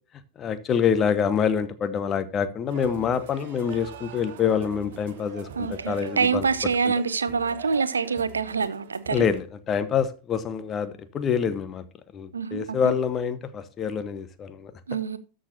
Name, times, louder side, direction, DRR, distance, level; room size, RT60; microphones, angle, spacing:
voice 1, 0.4-6.5 6.8-6.9 9.1-11.8 12.1-14.7, left 7 dB, 25° left, 0.9 m, -26 dB
sound 1, 2.7-9.4, right 7 dB, 55° right, 1.1 m, -43 dB
voice 2, 5.6-9.2 12.3-12.9 14.9-15.2, right 5 dB, 75° right, 0.6 m, -26 dB
13.0 x 6.4 x 2.6 m
figure-of-eight pair, 90°, 0 cm